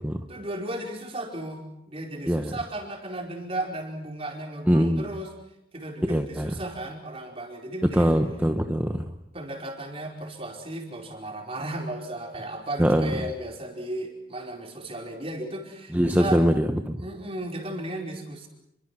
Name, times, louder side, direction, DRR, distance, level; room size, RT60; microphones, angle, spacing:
voice 1, 0.3-5.3 5.7-8.1 9.3-16.4 17.0-18.5, right 1 dB, 30° right, 1 dB, 5.0 m, -35 dB
voice 2, 4.7-5.1 6.1-6.6 7.9-9.0 12.8-13.1 15.9-17.0, equal, 10° right, 5 dB, 1.0 m, -22 dB
29.5 x 23.5 x 6.2 m, 0.82 s
head